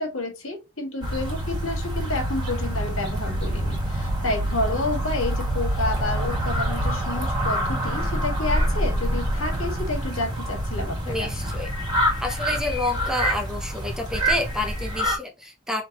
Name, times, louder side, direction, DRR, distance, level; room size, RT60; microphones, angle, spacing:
voice 1, 0.0-11.3, left 2 dB, 75° left, 1.9 m, -30 dB
sound 1, 1.0-15.2, equal, 20° right, 1.9 m, -26 dB
voice 2, 11.0-11.7 12.2-15.8, left 2 dB, 5° right, 0.6 m, -29 dB
4.6 x 3.5 x 2.9 m
head